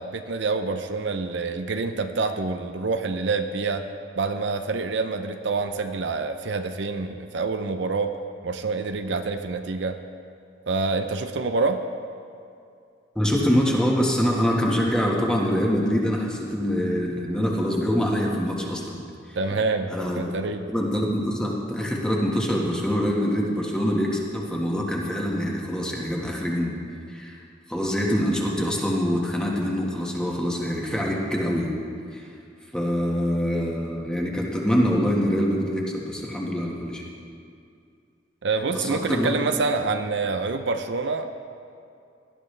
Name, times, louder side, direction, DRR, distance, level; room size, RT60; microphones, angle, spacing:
voice 1, 0.0-3.8 4.2-8.1 8.4-10.0 10.7-11.8 19.4-19.9 20.2-20.6 38.4-41.3, right 4 dB, 65° right, 7 dB, 0.6 m, -26 dB
voice 2, 13.1-19.4 19.9-20.2 20.7-26.7 27.1-27.4 27.7-31.8 32.1-32.3 32.7-37.0 38.7-39.3, equal, 5° left, -2 dB, 1.5 m, -25 dB
18.0 x 12.5 x 3.3 m, 2.4 s
head